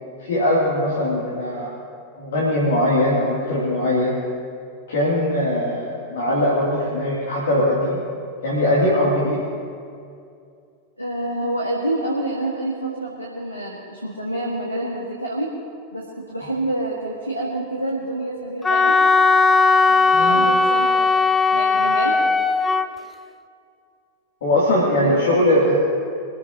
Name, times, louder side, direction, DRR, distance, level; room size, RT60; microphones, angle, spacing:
voice 1, 0.2-1.7 2.2-4.2 4.9-8.0 8.4-9.4 20.1-20.5 24.4-25.8, left 1 dB, 60° left, -6 dB, 2.9 m, -20 dB
voice 2, 11.0-15.5 15.9-19.0 19.9-22.2 25.0-25.2, right 1 dB, 90° left, -2 dB, 1.9 m, -27 dB
Wind instrument woodwind instrument, 18.6-22.9, left 3 dB, 15° left, 0.5 m, -17 dB
24.5 x 14.5 x 3.0 m, 2.4 s
figure-of-eight pair, 90°, 0 cm